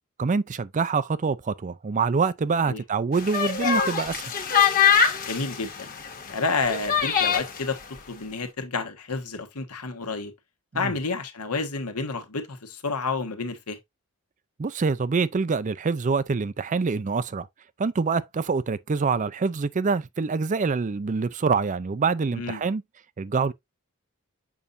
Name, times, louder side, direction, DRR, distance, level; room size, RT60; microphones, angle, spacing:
voice 1, 0.2-4.2 10.7-10.9 14.6-17.5 17.8-22.8 23.2-23.5, right 4 dB, 35° right, 0.4 m, -25 dB
sound 1, 3.1-7.6, left 7 dB, 40° left, 1.4 m, -23 dB
voice 2, 5.3-5.9 6.3-7.8 8.1-10.3 10.7-13.8 22.3-22.6, left 4 dB, 80° left, 1.4 m, -30 dB
7.1 x 5.5 x 2.5 m
head